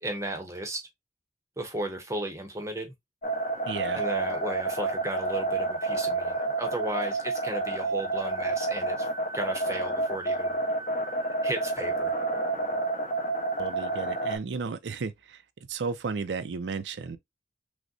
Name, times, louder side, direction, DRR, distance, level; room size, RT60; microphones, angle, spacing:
voice 1, 0.0-0.8 1.6-2.9 3.9-10.6 11.4-12.1, right 1 dB, 15° right, 0.7 m, -35 dB
sound 1, 3.2-14.4, right 2 dB, 45° left, 1.0 m, -29 dB
voice 2, 3.7-4.0 13.6-15.1 15.7-17.2, right 5 dB, 85° right, 0.5 m, -33 dB
6.1 x 2.1 x 2.6 m
head